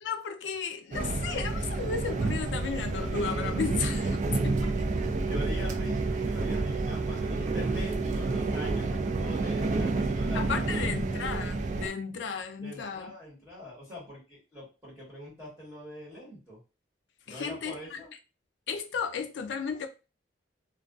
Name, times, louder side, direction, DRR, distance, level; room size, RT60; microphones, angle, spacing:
voice 1, 0.0-5.1 10.3-13.1 17.3-18.0 18.7-19.9, left 6 dB, 90° left, 0.4 m, -34 dB
sound 1, 0.9-11.9, right 3 dB, 45° right, 0.3 m, -29 dB
voice 2, 5.3-8.9 9.2-11.0 12.6-16.6 17.2-18.1, left 1 dB, 10° right, 1.2 m, -44 dB
2.5 x 2.2 x 2.3 m
head